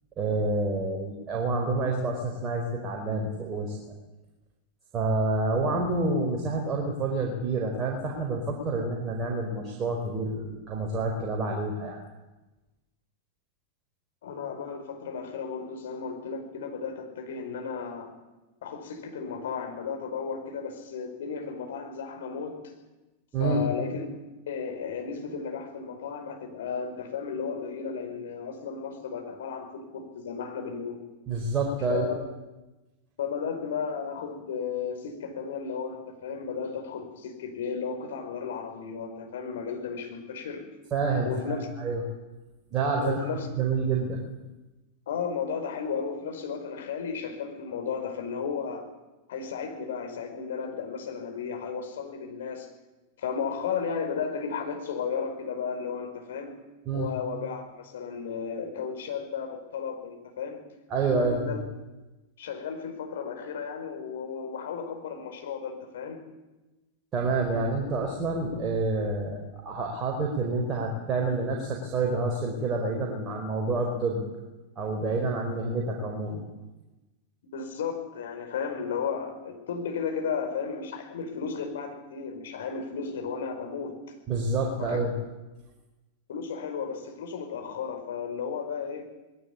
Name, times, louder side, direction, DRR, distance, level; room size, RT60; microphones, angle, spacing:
voice 1, 0.2-3.8 4.9-12.0 23.3-23.6 31.3-32.0 40.9-42.0 42.7-43.3 43.5-44.2 56.9-57.1 60.9-61.4 67.1-74.2 74.8-76.4 84.3-85.1, right 3 dB, 25° right, -1 dB, 4.5 m, -28 dB
voice 2, 14.2-18.1 18.6-22.6 23.4-24.1 24.5-31.0 31.9-32.2 33.2-40.6 41.2-41.7 43.0-43.5 45.1-48.9 49.3-52.7 53.2-56.5 56.9-60.6 61.1-61.6 62.4-66.2 77.5-84.0 84.8-85.0 86.3-89.1, left 6 dB, 60° left, 4 dB, 5.0 m, -34 dB
20.5 x 17.5 x 8.7 m, 1.1 s
figure-of-eight pair, 90°, 0 cm